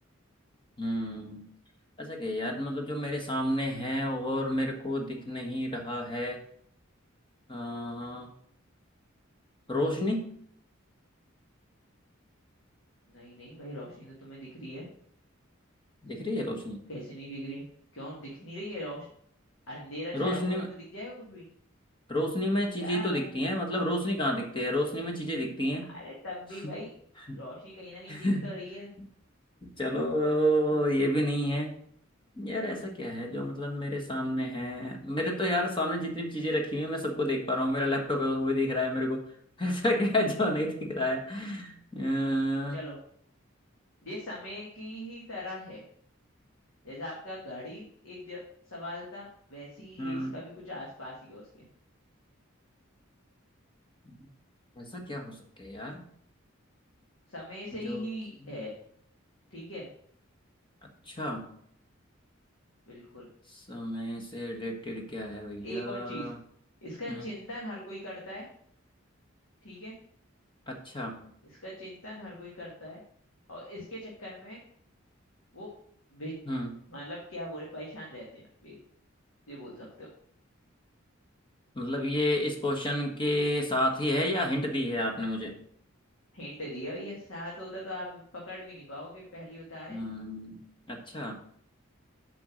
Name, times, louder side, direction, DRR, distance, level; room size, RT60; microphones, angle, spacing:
voice 1, 0.8-1.5 2.0-6.4 7.5-8.3 9.7-10.3 16.0-16.8 20.1-20.7 22.1-25.9 27.3-27.4 28.1-28.5 29.6-31.7 32.4-39.2 39.6-42.8 50.0-50.4 54.8-56.0 57.7-58.0 61.1-61.5 63.5-66.3 70.7-71.2 76.5-76.7 81.7-85.5 89.9-90.6 90.9-91.4, left 1 dB, 25° left, 2 dB, 1.4 m, -30 dB
voice 2, 13.1-14.9 16.9-17.6 17.9-19.1 19.7-21.5 22.8-23.2 25.9-26.9 27.3-28.9 42.7-43.0 44.0-45.8 46.8-48.4 48.7-51.7 57.3-58.7 59.5-59.9 62.9-63.3 65.6-66.3 66.8-68.5 69.6-69.9 71.4-73.0 73.5-74.6 75.5-75.7 76.1-76.3 76.9-78.8 79.5-80.1 86.3-90.0, left 1 dB, 80° left, -4 dB, 2.2 m, -41 dB
7.1 x 5.4 x 6.2 m, 0.65 s
head